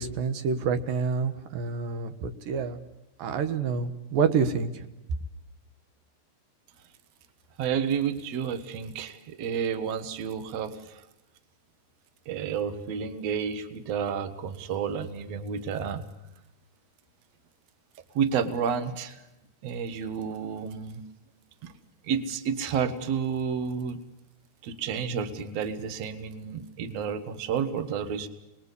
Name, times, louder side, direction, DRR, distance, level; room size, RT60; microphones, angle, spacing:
voice 1, 0.0-2.8 3.2-4.9, right 5 dB, 90° right, 8 dB, 3.1 m, -28 dB
voice 2, 7.6-11.1 12.3-16.1 18.1-19.2 19.6-21.0 21.6-21.7 22.0-24.0 24.6-28.3, right 7 dB, 55° right, 9 dB, 2.4 m, -30 dB
29.0 x 20.5 x 8.3 m, 0.92 s
omnidirectional pair, 3.8 m